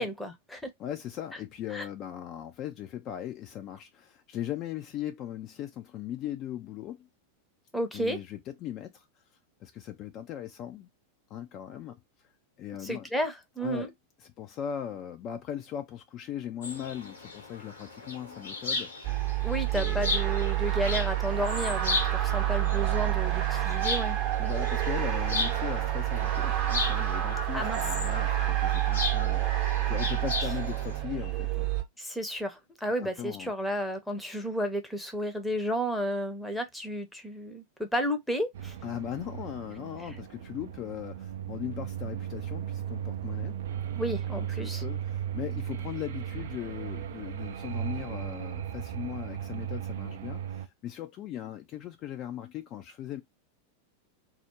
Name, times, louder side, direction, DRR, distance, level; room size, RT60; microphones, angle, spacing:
voice 1, 0.0-0.7 1.7-1.8 7.7-8.2 12.8-13.9 19.4-24.5 27.5-27.8 32.0-38.8 44.0-44.8, equal, 5° left, 0.7 m, -32 dB
voice 2, 0.8-7.1 7.9-9.1 9.6-10.9 11.3-12.0 12.6-13.1 13.6-13.9 14.2-19.1 19.6-20.1 24.4-31.7 33.0-33.5 38.8-43.6 44.3-53.2, left 11 dB, 35° left, 0.4 m, -39 dB
sound 1, 16.6-31.0, left 3 dB, 70° left, 0.9 m, -36 dB
sound 2, 19.0-31.8, right 13 dB, 40° right, 0.7 m, -28 dB
sound 3, 38.5-50.7, right 10 dB, 55° right, 0.3 m, -36 dB
2.4 x 2.0 x 2.9 m
figure-of-eight pair, 90°, 0 cm